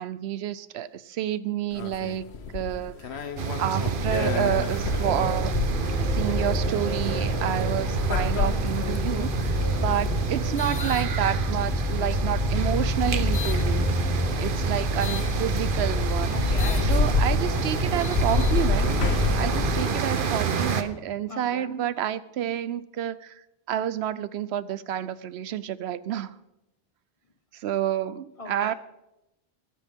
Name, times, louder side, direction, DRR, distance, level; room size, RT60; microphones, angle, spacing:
voice 1, 0.0-2.3 2.5-3.2 3.6-5.6 6.1-13.9 14.4-16.4 16.8-18.9 19.4-26.3 27.5-28.7, right 10 dB, 80° right, 0.9 m, -29 dB
sound 1, 1.7-11.7 12.4-13.6 15.0-15.3 15.8-15.9 16.2-20.4, left 4 dB, 80° left, 1.1 m, -30 dB
sound 2, 3.4-20.8, right 6 dB, 55° right, 1.0 m, -28 dB
sound 3, 5.0-19.9, left 3 dB, 15° left, 0.3 m, -29 dB
voice 2, 16.3-17.1 18.7-19.2 21.3-21.7 28.4-28.7, left 2 dB, 30° left, 1.5 m, -40 dB
22.5 x 9.7 x 3.6 m
omnidirectional pair, 1.1 m